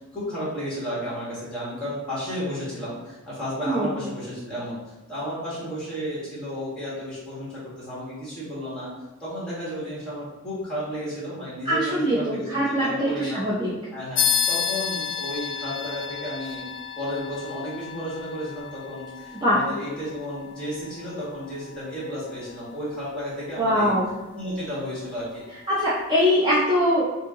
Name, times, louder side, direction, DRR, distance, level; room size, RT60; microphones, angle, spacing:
voice 1, 0.1-4.8 5.1-8.9 9.2-13.4 13.9-16.6 17.0-23.9 24.3-25.4, equal, 5° left, -9 dB, 1.4 m, -33 dB
voice 2, 11.6-13.7 19.4-19.6 23.6-24.1 25.7-27.1, equal, 20° right, -9 dB, 0.5 m, -22 dB
sound 1, 14.2-24.1, left 7 dB, 55° left, 0.3 m, -32 dB
2.8 x 2.7 x 3.5 m, 1.1 s
head